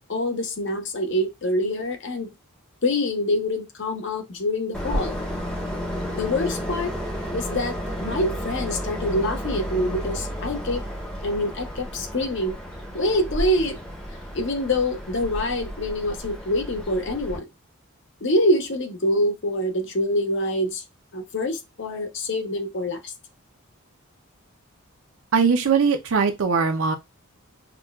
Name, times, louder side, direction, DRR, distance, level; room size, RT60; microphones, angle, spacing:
voice 1, 0.1-2.3 2.8-5.2 6.1-6.9 7.3-7.7 8.0-10.8 11.2-12.5 12.9-13.8 14.3-17.4 18.2-20.8 21.1-23.0, left 1 dB, 55° left, 0.7 m, -25 dB
Train, 4.7-17.4, equal, 5° left, 0.7 m, -32 dB
voice 2, 25.3-26.9, right 5 dB, 65° right, 0.5 m, -20 dB
5.8 x 2.2 x 2.3 m
head